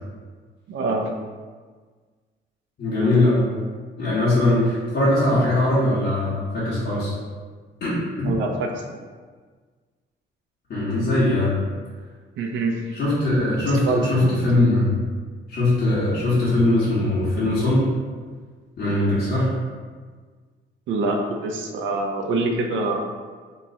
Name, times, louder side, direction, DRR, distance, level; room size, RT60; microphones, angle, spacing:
voice 1, 0.7-1.1 8.2-9.0 12.4-13.0 13.8-14.3 20.9-23.0, right 2 dB, 70° right, 2 dB, 0.5 m, -25 dB
voice 2, 2.8-3.5 4.0-7.1 7.8-8.3 10.7-11.5 12.9-14.9 15.5-17.9 18.8-19.5, left 1 dB, 55° left, -9 dB, 1.2 m, -20 dB
3.0 x 2.3 x 4.0 m, 1.5 s
cardioid pair, 90°, 20 cm